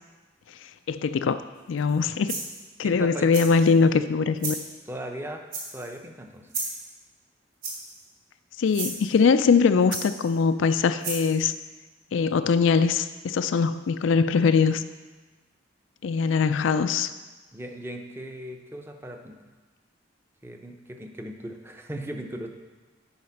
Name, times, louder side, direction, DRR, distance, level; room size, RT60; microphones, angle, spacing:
voice 1, 0.9-1.4 1.7-2.3 2.8-4.6 8.6-11.5 12.1-14.8 16.0-17.1, left 5 dB, 85° left, 11 dB, 0.4 m, -22 dB
sound 1, 1.8-2.0 2.3-2.7 3.3-3.7 4.4-4.6 5.5-5.9 6.5-6.8 7.6-8.0 8.7-9.0 9.9-10.4 11.0-11.3, right 4 dB, 50° right, 2.3 m, -33 dB
voice 2, 2.8-3.3 4.9-5.4 5.7-6.5 17.5-19.3 20.4-22.5, right 1 dB, 10° right, 4 dB, 0.7 m, -38 dB
9.5 x 5.0 x 5.8 m, 1.3 s
head